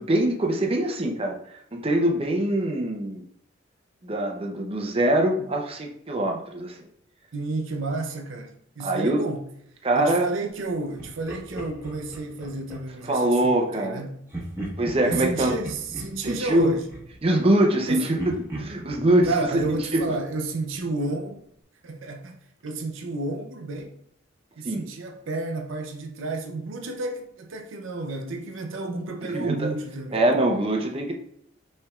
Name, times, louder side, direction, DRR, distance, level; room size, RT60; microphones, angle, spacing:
voice 1, 0.0-1.4 1.7-3.2 4.0-6.8 8.8-9.3 9.8-10.3 13.1-14.0 14.8-15.5 16.2-16.7 17.2-19.5 19.9-20.2 24.6-24.9 29.3-29.7 30.1-31.1, right 1 dB, 30° right, 0.6 m, -23 dB
voice 2, 7.3-9.5 10.0-14.2 15.0-16.9 17.9-18.1 19.2-21.4 21.8-22.3 22.6-23.9 24.6-30.3, right 3 dB, 80° right, 0.6 m, -31 dB
Laughter, 11.0-13.1 14.3-17.8 18.2-20.9, right 1 dB, 15° right, 1.2 m, -38 dB
5.7 x 3.3 x 2.4 m
head